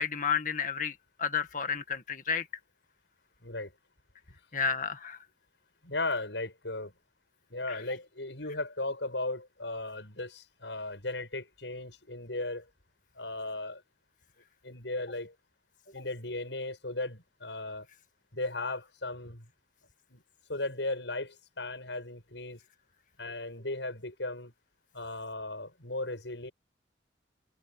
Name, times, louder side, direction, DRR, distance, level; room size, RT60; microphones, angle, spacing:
voice 1, 0.0-2.5 4.5-5.2, left 6 dB, 45° left, 1.9 m, -31 dB
voice 2, 5.8-6.9 7.5-12.7 13.1-13.8 14.6-15.3 15.9-17.9 18.3-19.5 20.1-20.2 20.5-22.6 23.2-24.5 24.9-26.5, left 2 dB, 80° left, 7.7 m, -36 dB
head